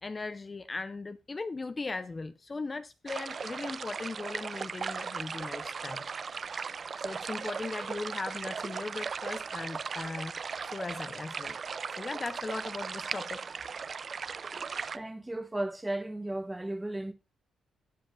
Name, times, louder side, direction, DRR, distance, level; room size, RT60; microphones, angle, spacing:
voice 1, 0.0-6.1 7.0-11.6 11.9-13.5, left 3 dB, 25° left, 0.5 m, -38 dB
sound 1, 3.1-15.0, right 5 dB, 45° right, 0.4 m, -37 dB
voice 2, 14.9-17.1, right 1 dB, 10° right, 1.1 m, -35 dB
18.0 x 7.2 x 2.5 m
cardioid pair, 100°, 0 cm